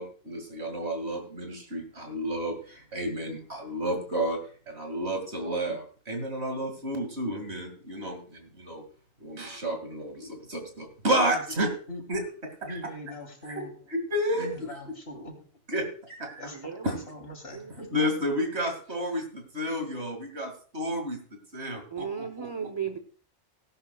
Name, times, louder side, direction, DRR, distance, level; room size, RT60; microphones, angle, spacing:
voice 1, 0.0-2.5 2.9-4.4 4.7-8.2 8.7-8.8 9.2-10.1 10.5-11.7 12.1-12.2 12.7-12.8 13.5-13.6 13.9-14.5 15.7-15.8 16.1-16.3 16.8-16.9 17.9-19.2 19.5-21.2 21.5-21.8 22.2-22.5, equal, 60° right, 4 dB, 2.7 m, -30 dB
voice 2, 12.6-13.7 14.4-15.3 16.4-17.9, left 1 dB, 55° left, 2 dB, 3.6 m, -41 dB
voice 3, 16.5-17.0 17.5-18.2 21.9-23.0, right 7 dB, 25° right, 7 dB, 0.7 m, -36 dB
18.0 x 11.0 x 2.4 m, 0.41 s
omnidirectional pair, 1.3 m